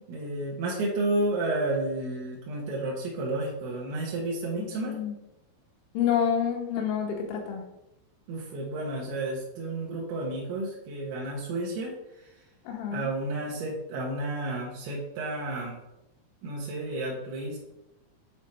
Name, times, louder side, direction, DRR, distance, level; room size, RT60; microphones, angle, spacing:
voice 1, 0.1-5.0 8.3-11.9 12.9-15.8 16.4-17.6, right 2 dB, 75° right, -3 dB, 2.5 m, -31 dB
voice 2, 4.6-5.1 5.9-7.6 12.7-13.1, left 8 dB, 85° left, 1 dB, 3.3 m, -28 dB
8.0 x 4.2 x 3.3 m, 0.88 s
omnidirectional pair, 5.4 m